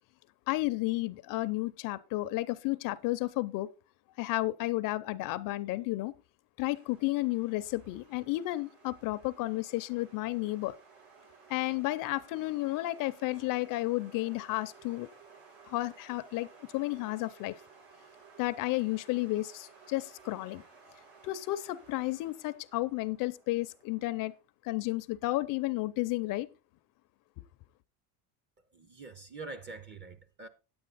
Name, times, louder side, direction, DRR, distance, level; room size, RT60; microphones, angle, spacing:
voice 1, 0.5-3.7 4.2-6.1 6.6-10.8 11.5-15.1 15.7-16.5 16.7-17.6 18.4-20.6 21.2-24.3 24.6-26.5, left 19 dB, 50° left, 0.6 m, -32 dB
sound 1, 6.6-24.4, right 5 dB, 85° right, 6.6 m, -57 dB
voice 2, 28.7-30.5, right 3 dB, 25° right, 0.7 m, -45 dB
9.5 x 8.7 x 4.0 m
cardioid pair, 165°, 42 cm